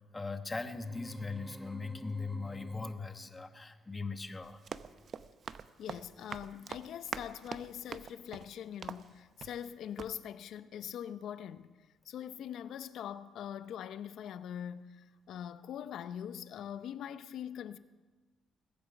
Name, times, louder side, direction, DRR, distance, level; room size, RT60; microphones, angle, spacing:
voice 1, 0.1-4.6, left 3 dB, 20° left, 1.2 m, -39 dB
sound 1, 0.7-3.4, right 1 dB, 10° right, 0.5 m, -50 dB
Run, 4.4-9.7 10.0-10.1, right 6 dB, 55° right, 0.6 m, -45 dB
voice 2, 5.8-11.7 12.0-17.8, left 9 dB, 75° left, 0.6 m, -42 dB
21.0 x 8.6 x 7.0 m
cardioid pair, 90°, 0 cm